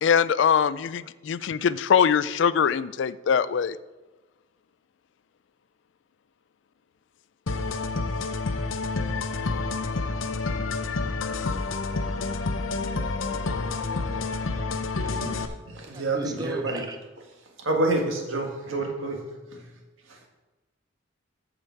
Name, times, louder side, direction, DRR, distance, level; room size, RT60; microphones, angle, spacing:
voice 1, 0.0-3.8, left 7 dB, 65° left, 17 dB, 0.3 m, -22 dB
sound 1, 7.5-15.5, left 3 dB, 80° left, 0.7 m, -29 dB
voice 2, 15.0-16.9 17.6-19.2 19.5-19.7 20.1-20.2, right 2 dB, 80° right, 2 dB, 1.6 m, -29 dB
voice 3, 15.9-17.0, right 1 dB, 20° right, 6 dB, 0.6 m, -35 dB
14.0 x 5.0 x 4.5 m, 1.2 s
head